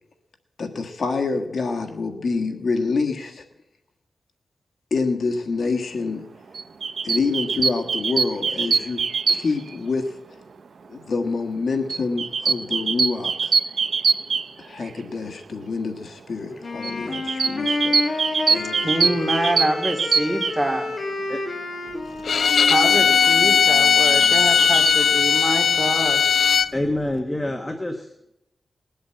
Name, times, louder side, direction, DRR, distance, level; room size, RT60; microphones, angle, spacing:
voice 1, 0.6-3.4 4.9-6.3 7.0-10.4 10.9-13.5 14.6-18.2 18.5-18.9, left 4 dB, 65° left, 4 dB, 1.6 m, -27 dB
sound 1, 6.5-9.8 11.9-15.0 16.8-20.6 23.8-24.9, right 5 dB, 70° right, 0.6 m, -23 dB
Wind instrument woodwind instrument, 16.6-24.5, left 2 dB, 40° left, 2.1 m, -30 dB
voice 2, 18.4-20.9 22.7-26.2, right 1 dB, 10° right, 2 dB, 2.3 m, -26 dB
Bowed string instrument, 22.2-26.7, left 7 dB, 80° left, 0.4 m, -18 dB
voice 3, 26.7-28.1, left 1 dB, 15° left, 4 dB, 1.2 m, -26 dB
20.0 x 8.0 x 7.8 m, 0.87 s
wide cardioid pair, 160°, 0 cm